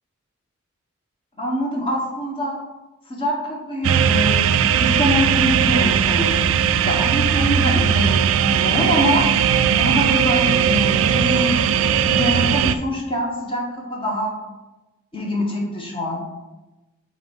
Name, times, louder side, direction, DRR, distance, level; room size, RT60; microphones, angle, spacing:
voice 1, 1.4-2.6 3.1-4.4 4.7-6.4 6.8-9.3 9.8-11.6 12.0-13.6 13.9-14.3 15.1-16.2, equal, 25° left, -2 dB, 1.3 m, -24 dB
sound 1, 3.8-12.8, right 8 dB, 80° right, 0.3 m, -18 dB
7.8 x 2.7 x 5.4 m, 1.1 s
head